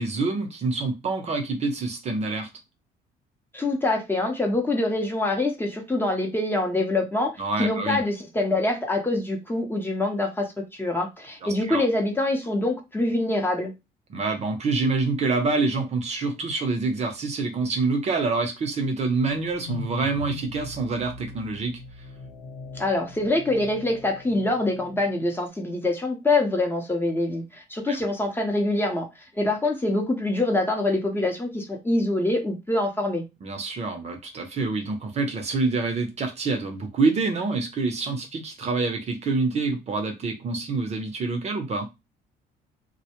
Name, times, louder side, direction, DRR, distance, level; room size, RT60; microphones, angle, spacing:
voice 1, 0.0-2.5 7.4-8.0 11.6-11.8 14.1-21.8 27.9-28.0 33.4-41.9, right 3 dB, 40° right, 0.6 m, -26 dB
voice 2, 3.5-7.3 7.6-13.7 22.7-29.1 29.3-33.2, left 2 dB, 15° left, 0.7 m, -25 dB
sound 1, 19.0-25.3, left 2 dB, 85° left, 1.0 m, -41 dB
2.1 x 2.1 x 2.9 m
cardioid pair, 110°, 17 cm